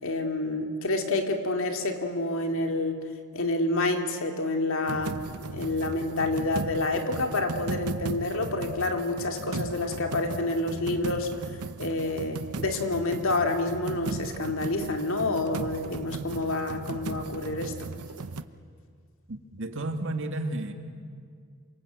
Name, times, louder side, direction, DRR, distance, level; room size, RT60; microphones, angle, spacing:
voice 1, 0.0-3.1 3.3-5.2 5.5-11.3 11.8-17.9, left 2 dB, 60° left, 4 dB, 2.6 m, -28 dB
sound 1, 4.9-18.4, right 3 dB, 90° right, 0.9 m, -36 dB
voice 2, 19.3-20.7, right 2 dB, 60° right, 5 dB, 2.2 m, -32 dB
27.5 x 24.5 x 8.0 m, 2.1 s
head